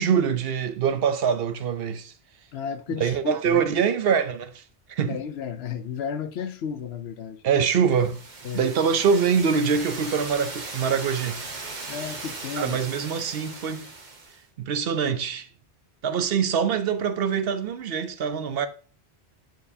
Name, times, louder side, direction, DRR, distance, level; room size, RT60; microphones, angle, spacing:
voice 1, 0.0-2.1 3.0-4.6 4.9-5.2 7.4-8.2 8.5-11.4 12.6-13.9 14.6-15.5 16.0-18.7, right 6 dB, 65° right, 0.8 m, -24 dB
voice 2, 2.5-3.7 5.1-7.4 8.4-8.7 11.9-12.8, left 7 dB, 75° left, 0.8 m, -33 dB
sound 1, 7.9-14.4, right 3 dB, 45° right, 1.1 m, -38 dB
8.7 x 4.7 x 2.7 m
omnidirectional pair, 1.1 m